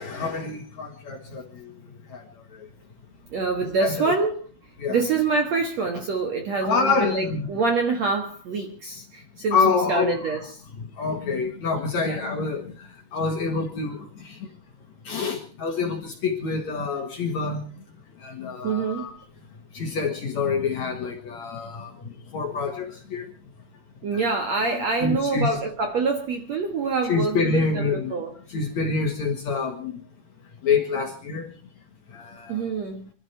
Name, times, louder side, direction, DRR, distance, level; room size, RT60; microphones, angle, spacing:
voice 1, 0.0-1.7 2.1-2.2 2.5-2.7 3.8-4.1 4.8-5.0 6.6-7.5 9.5-10.4 11.0-14.5 15.0-17.6 18.2-19.1 19.7-23.3 24.1-24.2 25.0-25.5 27.0-28.1 28.5-30.0 30.6-31.5 32.1-32.7, left 4 dB, 55° left, 4 dB, 2.3 m, -27 dB
voice 2, 3.3-4.4 4.9-10.5 12.0-12.2 18.6-19.1 24.0-28.3 32.5-33.1, right 4 dB, 60° right, 5 dB, 2.0 m, -26 dB
24.5 x 12.5 x 4.5 m, 0.40 s
omnidirectional pair, 4.9 m